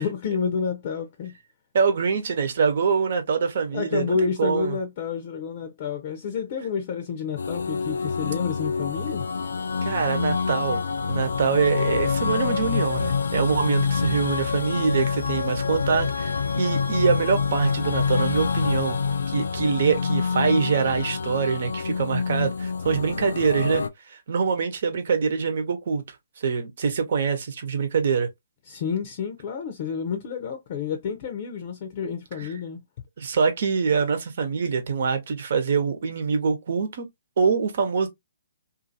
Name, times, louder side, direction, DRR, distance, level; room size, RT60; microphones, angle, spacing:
voice 1, 0.0-1.3 3.7-9.2 28.7-32.8, left 6 dB, 45° left, 0.6 m, -29 dB
voice 2, 1.7-4.8 9.8-10.8 11.1-19.0 19.3-26.0 26.4-28.3 32.4-32.5 33.2-37.1 37.4-38.1, right 5 dB, 60° right, 1.0 m, -24 dB
sound 1, 7.4-23.9, left 5 dB, 80° left, 0.4 m, -26 dB
2.6 x 2.6 x 2.7 m
hypercardioid pair, 145°, 0 cm